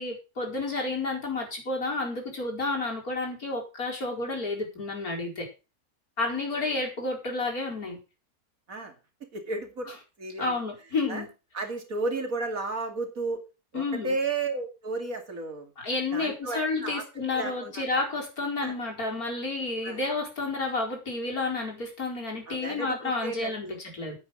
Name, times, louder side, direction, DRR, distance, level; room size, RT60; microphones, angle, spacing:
voice 1, 0.0-5.5 6.2-8.0 10.4-11.3 13.7-14.1 15.8-23.7 23.9-24.1, left 3 dB, 70° left, -1 dB, 5.1 m, -30 dB
voice 2, 9.3-9.9 10.2-10.5 11.1-11.2 11.5-13.4 13.7-15.7 16.1-17.1 17.3-17.9 18.6-18.7 19.8-20.0 22.5-23.8, right 3 dB, 65° right, 4 dB, 2.9 m, -33 dB
9.5 x 9.3 x 6.3 m, 0.31 s
omnidirectional pair, 1.6 m